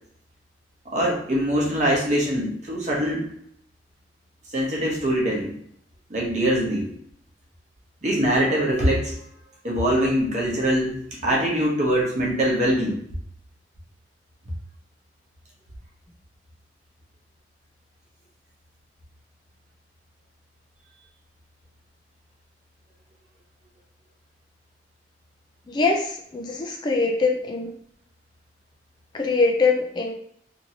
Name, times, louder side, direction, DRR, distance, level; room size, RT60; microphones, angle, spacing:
voice 1, 0.8-3.3 4.5-5.5 6.1-6.9 8.0-9.2 9.6-13.0, equal, 40° right, -3 dB, 0.9 m, -23 dB
voice 2, 25.7-27.7 29.1-30.1, left 3 dB, 25° left, 2 dB, 0.3 m, -23 dB
2.9 x 2.6 x 2.8 m, 0.69 s
head